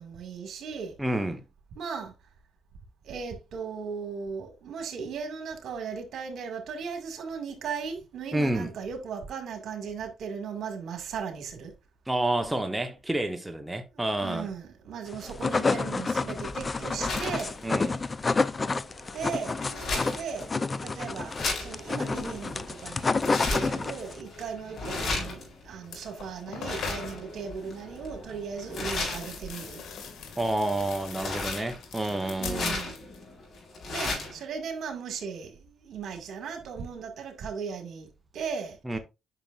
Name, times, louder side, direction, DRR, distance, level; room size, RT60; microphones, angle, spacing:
voice 1, 0.0-1.0 1.8-2.1 3.0-11.7 14.2-17.6 19.1-20.5 20.8-29.8 32.3-32.9 33.9-38.1 38.3-38.8, right 6 dB, 70° right, 2.0 m, -37 dB
voice 2, 1.0-1.4 8.3-8.7 12.1-14.5 17.6-18.0 30.4-32.8 38.8-39.0, right 1 dB, 10° right, 1.0 m, -29 dB
sound 1, 15.1-24.2, left 4 dB, 30° left, 0.5 m, -29 dB
sound 2, 16.3-34.4, left 3 dB, 60° left, 4.4 m, -36 dB
sound 3, 25.4-25.5 25.8-27.3 28.7-33.3 33.5-34.1, left 5 dB, 80° left, 2.0 m, -42 dB
8.9 x 6.0 x 2.5 m
cardioid pair, 75°, 0 cm